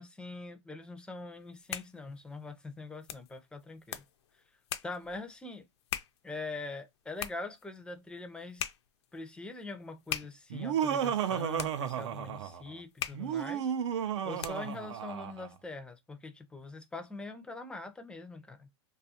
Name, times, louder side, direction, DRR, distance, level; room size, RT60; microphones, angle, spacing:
voice 1, 0.0-4.0 4.8-5.6 6.2-8.6 9.1-13.7 14.0-18.7, left 3 dB, 5° left, 0.4 m, -43 dB
sound 1, 1.4-14.9, left 10 dB, 70° left, 0.4 m, -44 dB
Laughter, 10.5-12.7 13.1-15.5, right 9 dB, 75° right, 0.4 m, -33 dB
2.4 x 2.3 x 2.8 m
hypercardioid pair, 120°, 15 cm